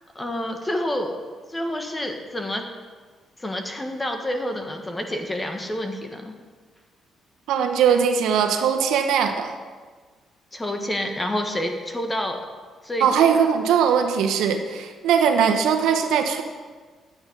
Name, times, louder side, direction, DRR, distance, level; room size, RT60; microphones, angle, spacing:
voice 1, 0.1-1.2 1.5-2.7 3.4-6.3 10.5-12.4 12.8-13.1, left 1 dB, 15° left, 4 dB, 1.4 m, -28 dB
voice 2, 7.5-9.5 13.0-16.4, right 7 dB, 85° right, 4 dB, 1.1 m, -20 dB
10.5 x 8.7 x 5.4 m, 1.5 s
cardioid pair, 90°, 0 cm